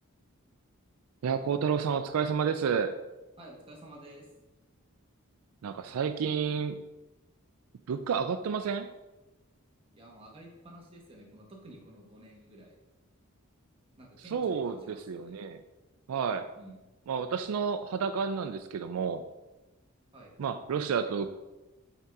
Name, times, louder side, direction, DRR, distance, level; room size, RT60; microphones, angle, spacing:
voice 1, 1.2-3.0 5.6-6.8 7.9-8.9 14.3-15.6 16.1-16.5 17.1-19.2 20.4-21.3, right 6 dB, 85° right, 9 dB, 0.4 m, -30 dB
voice 2, 3.4-4.3 9.9-12.8 14.0-15.5 16.6-16.8 20.1-20.3, right 1 dB, 25° right, -2 dB, 1.2 m, -51 dB
5.7 x 3.7 x 4.6 m, 1.1 s
head